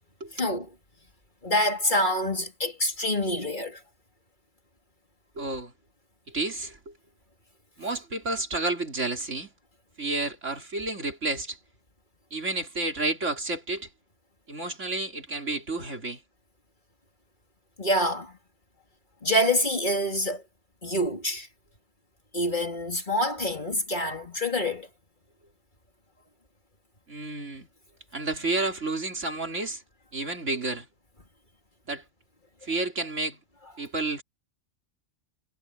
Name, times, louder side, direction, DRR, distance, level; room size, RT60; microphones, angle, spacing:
voice 1, 0.3-0.7 1.4-3.8 17.8-18.4 19.2-20.4 20.8-21.5 22.3-24.9, left 1 dB, 35° left, 3.1 m, -26 dB
voice 2, 5.4-5.7 6.3-6.9 7.8-9.5 10.0-11.6 12.3-13.9 14.5-16.2 27.1-27.7 28.1-29.8 30.1-30.9 31.9-32.0 32.6-33.4 33.8-34.2, right 2 dB, 65° right, 4.2 m, -30 dB
omnidirectional pair, 1.3 m